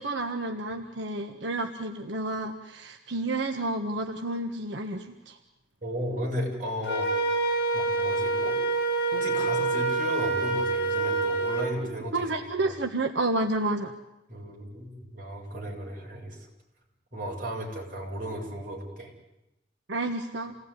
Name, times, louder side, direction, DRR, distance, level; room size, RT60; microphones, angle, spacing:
voice 1, 0.0-5.4 12.1-13.9 19.9-20.6, right 2 dB, 90° right, 4 dB, 1.5 m, -30 dB
voice 2, 5.8-7.1 7.7-8.6 9.1-12.7 14.3-16.5 17.1-19.1, equal, 50° right, -1 dB, 7.4 m, -35 dB
Wind instrument woodwind instrument, 6.8-11.7, right 3 dB, 65° left, 5.1 m, -26 dB
29.0 x 18.5 x 9.9 m, 0.93 s
head